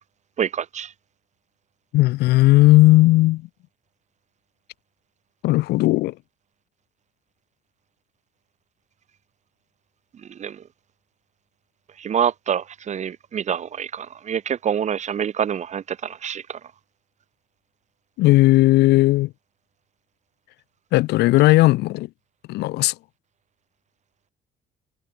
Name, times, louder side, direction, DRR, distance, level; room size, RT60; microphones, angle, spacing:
voice 1, 0.4-0.9 10.4-10.6 12.0-16.6, right 8 dB, 45° right, 1.5 m, -26 dB
voice 2, 1.9-3.4 5.4-6.1 18.2-19.3 20.9-22.1 22.5-22.9, left 18 dB, 80° left, 0.7 m, -16 dB
cardioid pair, 110°, 17 cm